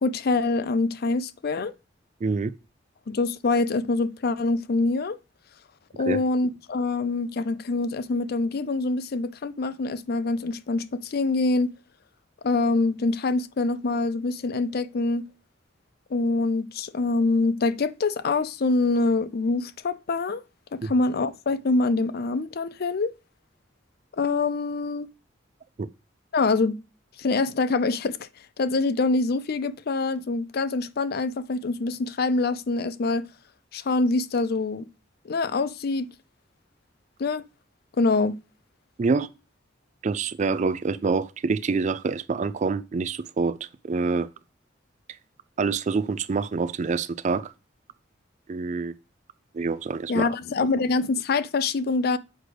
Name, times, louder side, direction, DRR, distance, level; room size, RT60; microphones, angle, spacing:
voice 1, 0.0-1.7 3.1-5.2 6.0-11.7 12.4-15.3 16.1-20.4 20.7-23.1 24.2-25.1 26.3-26.8 27.2-28.3 28.6-33.3 33.7-34.9 35.2-36.1 37.2-37.4 38.0-38.4 50.1-52.2, left 3 dB, 55° left, 0.5 m, -25 dB
voice 2, 2.2-2.5 6.1-6.2 20.8-20.9 25.8-25.9 39.0-39.3 40.0-43.6 43.8-44.3 45.6-47.5 48.5-48.9 49.5-50.3, right 4 dB, 40° right, 0.4 m, -26 dB
7.9 x 6.2 x 3.3 m
head